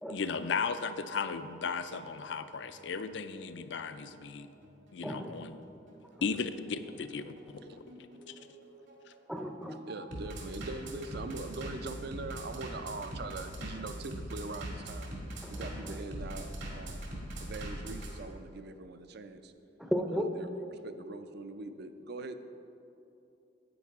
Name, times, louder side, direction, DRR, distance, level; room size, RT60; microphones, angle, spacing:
voice 1, 0.1-4.5 4.9-5.6 6.2-7.3 7.7-7.8 8.3-8.4, left 5 dB, 65° left, 11 dB, 0.4 m, -35 dB
Bass drum, 2.1-18.1, right 1 dB, 75° right, 2.0 m, -42 dB
voice 2, 5.0-5.4 9.3-9.8 15.4-15.6 19.8-20.2, equal, ahead, 3 dB, 0.5 m, -34 dB
voice 3, 9.9-15.1 15.5-17.1 17.4-19.5 20.1-22.4, right 3 dB, 55° right, 9 dB, 0.5 m, -42 dB
10.0 x 8.6 x 3.6 m, 2.9 s
head